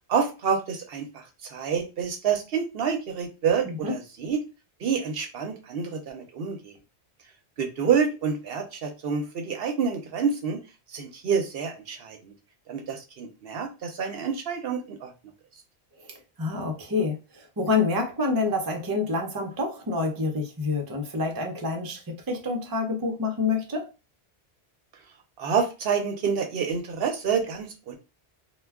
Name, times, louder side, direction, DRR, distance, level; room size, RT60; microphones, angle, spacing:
voice 1, 0.1-4.4 4.8-6.8 7.6-10.6 10.9-12.3 12.7-15.1 25.4-27.9, right 6 dB, 70° right, 4 dB, 0.8 m, -28 dB
voice 2, 16.0-23.9, left 3 dB, 30° right, 2 dB, 0.5 m, -28 dB
2.2 x 2.2 x 3.4 m, 0.29 s
omnidirectional pair, 1.1 m